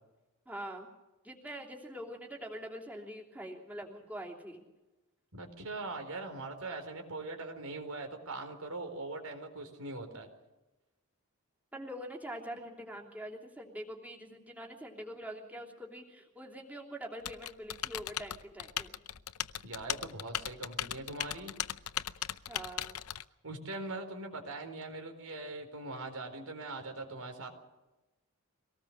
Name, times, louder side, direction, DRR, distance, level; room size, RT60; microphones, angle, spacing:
voice 1, 0.5-0.9 1.2-4.6 11.7-19.0 22.5-23.0, equal, 5° right, -1 dB, 3.1 m, -44 dB
voice 2, 5.3-10.3 19.6-21.5 23.4-27.5, right 2 dB, 80° right, 5 dB, 4.3 m, -41 dB
Typing, 17.2-23.2, left 11 dB, 80° left, 0.7 m, -38 dB
24.0 x 18.5 x 6.6 m, 1.1 s
head